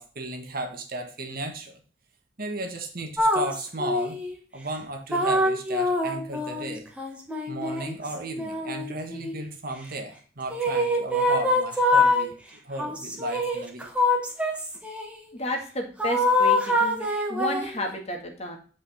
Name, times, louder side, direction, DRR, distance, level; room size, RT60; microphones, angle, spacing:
voice 1, 0.0-1.8 2.4-4.2 4.5-6.8 7.5-13.9, right 1 dB, 55° right, 4 dB, 1.6 m, -34 dB
sound 1, 3.2-4.3 5.1-9.5 10.5-12.3 12.8-15.2 16.0-17.8, left 1 dB, 5° right, 1.6 m, -25 dB
voice 2, 15.3-18.6, left 1 dB, 35° left, 2 dB, 2.0 m, -32 dB
8.7 x 5.2 x 4.3 m, 0.40 s
head